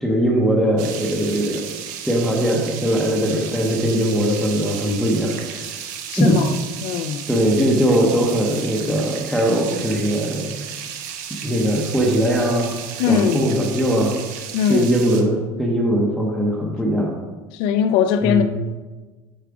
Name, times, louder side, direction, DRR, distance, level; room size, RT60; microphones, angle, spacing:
voice 1, 0.0-1.7 2.0-5.8 6.2-6.4 7.3-10.7 11.3-12.8 13.1-14.1 14.7-17.1 18.2-18.4, equal, ahead, -3 dB, 0.7 m, -20 dB
sound 1, 0.8-15.2, right 8 dB, 85° right, 0.8 m, -34 dB
voice 2, 6.1-6.5 6.8-7.2 13.0-13.5 14.5-14.9 17.5-18.4, left 7 dB, 55° left, 9 dB, 0.4 m, -20 dB
6.8 x 4.8 x 4.8 m, 1.2 s
cardioid pair, 180°, 10 cm